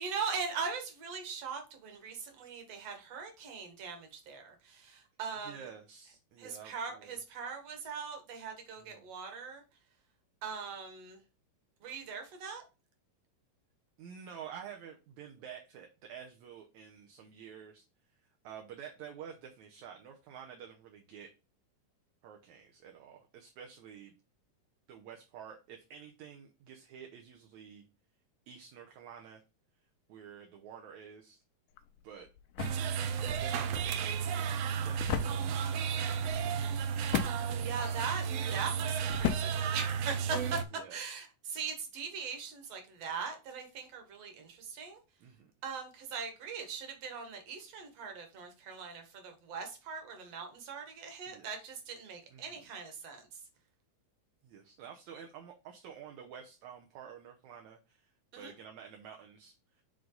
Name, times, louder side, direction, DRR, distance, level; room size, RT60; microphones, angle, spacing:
voice 1, 0.0-5.7 6.4-9.6 10.4-11.2 11.8-12.6 37.4-40.6 40.9-45.0 45.6-53.4 58.3-58.5, right 5 dB, 55° right, 2.4 m, -40 dB
voice 2, 5.4-7.2 8.8-9.0 14.0-17.8 18.4-21.3 22.2-24.1 24.9-27.9 28.5-29.4 30.1-31.4 32.0-32.3 33.2-36.8 40.7-41.2 45.2-45.5 51.3-51.7 52.3-52.6 54.4-59.8, right 8 dB, 70° right, 2.0 m, -50 dB
sound 1, 31.7-40.6, left 12 dB, 80° left, 2.3 m, -39 dB
sound 2, 32.6-40.6, right 7 dB, 90° right, 1.4 m, -33 dB
7.8 x 3.9 x 3.9 m
omnidirectional pair, 3.8 m